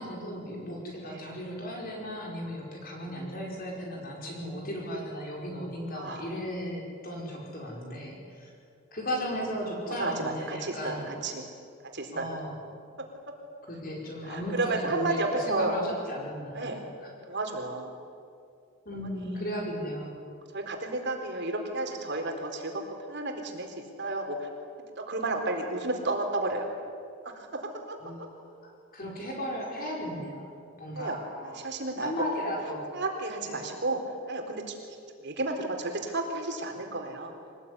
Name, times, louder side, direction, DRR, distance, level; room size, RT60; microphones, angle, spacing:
voice 1, 0.0-8.5 8.9-11.1 12.1-12.5 13.7-17.1 18.8-20.2 28.0-28.3 28.9-31.6 32.0-32.8 33.4-33.6, equal, 40° left, -1 dB, 5.0 m, -36 dB
voice 2, 1.0-1.4 5.9-6.2 9.9-11.4 11.9-12.3 13.3-13.4 14.2-15.7 16.5-16.8 17.3-17.9 19.0-19.5 20.5-22.8 23.1-24.5 25.0-26.6 27.2-27.6 27.9-28.0 30.9-31.2 31.4-32.3 32.9-34.0 34.3-34.7 35.2-37.3, right 2 dB, 55° right, 3 dB, 4.0 m, -32 dB
25.0 x 19.5 x 9.8 m, 2.4 s
head